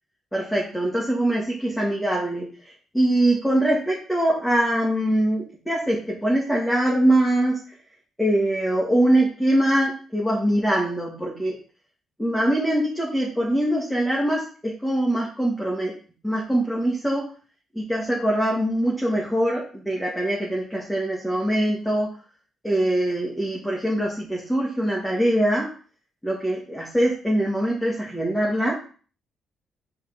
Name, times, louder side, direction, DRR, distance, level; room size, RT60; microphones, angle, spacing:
voice 1, 0.3-7.6 8.2-11.6 12.2-15.9 16.2-17.3 17.7-22.1 22.6-25.7 26.2-28.8, right 1 dB, 5° left, -4 dB, 1.7 m, -23 dB
5.5 x 3.7 x 5.1 m, 0.39 s
cardioid pair, 90°, 0 cm